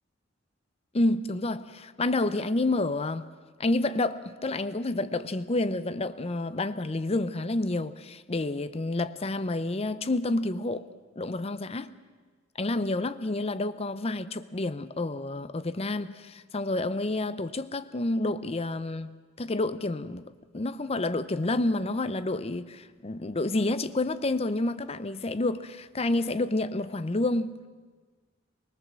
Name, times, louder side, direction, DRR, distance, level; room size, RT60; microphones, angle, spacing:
voice 1, 0.9-3.3 3.6-10.9 11.2-11.9 12.6-27.6, left 2 dB, 30° left, 0.7 m, -29 dB
25.0 x 21.5 x 7.5 m
head